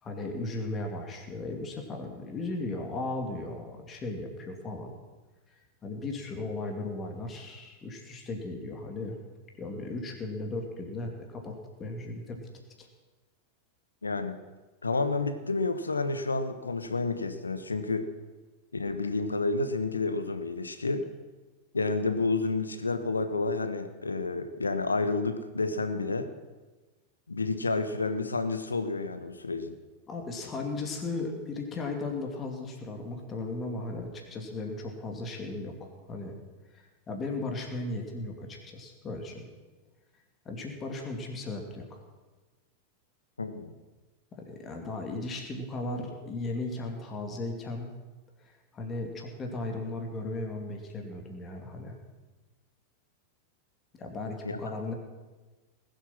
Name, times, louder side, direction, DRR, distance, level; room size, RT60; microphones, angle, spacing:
voice 1, 0.0-4.9 5.5-9.2 9.6-11.5 11.8-12.4 12.8-12.9 30.1-36.3 36.7-39.5 40.4-42.0 44.3-47.9 48.4-52.0 54.0-54.9, left 2 dB, 25° left, 2 dB, 2.7 m, -36 dB
voice 2, 14.0-14.4 14.8-18.1 18.7-21.0 21.7-26.3 27.3-29.7 43.4-43.7 54.4-54.6, left 3 dB, 75° left, 9 dB, 1.2 m, -30 dB
20.5 x 8.0 x 6.0 m, 1.3 s
figure-of-eight pair, 90°, 0 cm